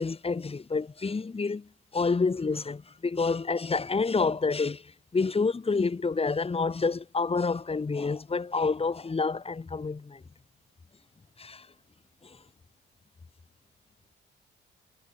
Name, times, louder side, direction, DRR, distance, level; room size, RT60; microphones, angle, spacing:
voice 1, 0.0-1.7 1.9-4.8 5.1-10.2 11.4-11.7, left 4 dB, 30° left, 7.1 m, -28 dB
cardioid pair, 90°, 20 cm